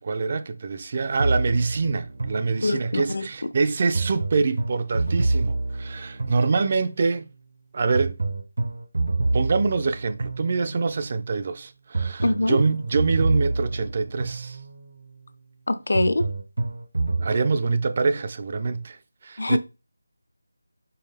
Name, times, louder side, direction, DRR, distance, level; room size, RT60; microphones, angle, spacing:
voice 1, 0.0-7.3 7.7-8.2 9.3-14.6 17.2-19.0 19.2-19.6, right 4 dB, 35° right, 0.3 m, -25 dB
sound 1, 1.2-3.1 3.9-7.0 7.9-11.0 11.9-15.0 15.9-17.3, right 2 dB, 65° right, 0.7 m, -27 dB
voice 2, 2.6-3.3 12.2-12.6 15.7-16.3 19.4-19.6, left 2 dB, 65° left, 0.4 m, -23 dB
4.5 x 3.3 x 3.3 m
figure-of-eight pair, 170°, 0 cm